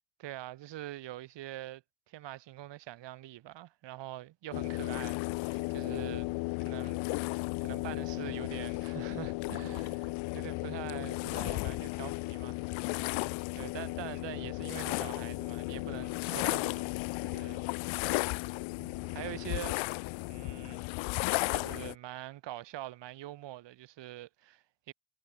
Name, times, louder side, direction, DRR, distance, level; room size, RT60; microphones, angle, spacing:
voice 1, 0.2-1.8 2.1-6.3 6.6-12.6 13.6-16.9 17.2-17.7 18.8-20.8 21.5-24.9, right 14 dB, 60° right, 3.9 m, -44 dB
sound 1, 4.5-21.9, left 25 dB, 65° left, 0.9 m, -34 dB
supercardioid pair, 90°, 49 cm